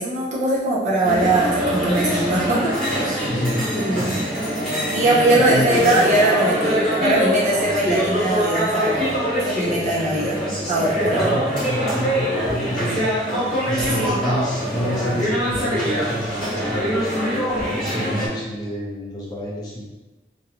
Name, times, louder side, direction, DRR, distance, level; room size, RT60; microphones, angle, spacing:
voice 1, 0.0-3.3 3.7-4.5 4.9-10.4 10.7-11.4 14.0-14.2, right 1 dB, 40° right, -6 dB, 0.6 m, -21 dB
sound 1, 1.0-18.3, equal, 5° left, 0.9 m, -24 dB
voice 2, 3.2-3.6 5.4-5.7 11.1-13.1 13.7-17.1 17.7-19.8, equal, 25° left, -5 dB, 0.5 m, -28 dB
sound 2, 12.4-12.6 13.8-13.9 15.5-15.7 17.4-17.8, left 1 dB, 75° left, 0.7 m, -36 dB
2.5 x 2.2 x 2.8 m, 1.1 s
head